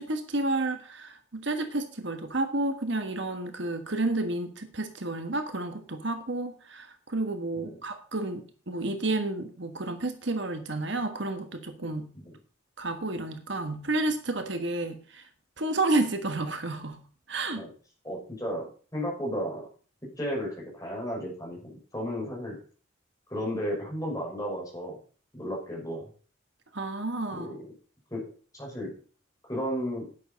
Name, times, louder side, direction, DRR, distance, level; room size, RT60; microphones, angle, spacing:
voice 1, 0.0-12.1 12.8-15.3 15.6-17.0 17.3-17.6 26.7-27.6, right 2 dB, 60° right, 7 dB, 1.5 m, -31 dB
voice 2, 18.0-19.6 20.2-22.6 23.3-25.0 25.3-26.1 27.3-27.6 28.1-28.2 28.5-28.9 29.5-30.1, equal, 15° left, -3 dB, 5.9 m, -33 dB
11.5 x 9.2 x 5.2 m, 0.40 s
head